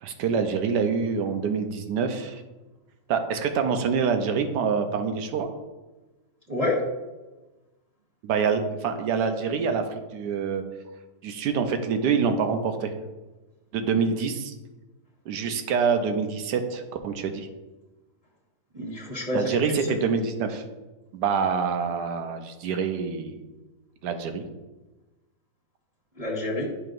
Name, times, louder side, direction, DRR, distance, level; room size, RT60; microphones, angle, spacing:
voice 1, 0.0-2.4 3.1-5.5 8.2-10.6 11.2-12.9 13.7-14.5 15.3-17.5 19.3-20.6 21.1-23.4 24.0-24.4, right 6 dB, 75° right, 7 dB, 1.2 m, -26 dB
voice 2, 18.7-19.9 26.2-26.7, left 2 dB, 25° right, -7 dB, 1.3 m, -28 dB
10.5 x 4.7 x 2.5 m, 1.1 s
omnidirectional pair, 1.9 m